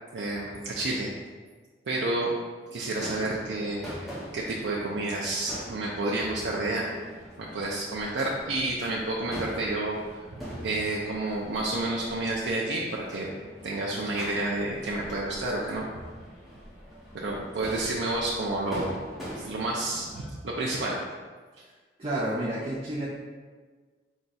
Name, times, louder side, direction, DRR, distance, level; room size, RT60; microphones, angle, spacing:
voice 1, 0.1-1.1 1.9-2.3 2.7-3.8 4.3-6.9 7.4-10.0 10.5-13.3 13.6-15.9 17.1-18.9 19.4-21.0, right 2 dB, 85° right, -4 dB, 0.5 m, -30 dB
Crowd / Fireworks, 2.9-20.2, equal, ahead, 0.9 m, -43 dB
voice 2, 22.0-23.1, right 1 dB, 30° right, -5 dB, 0.5 m, -30 dB
4.9 x 2.3 x 4.0 m, 1.4 s
head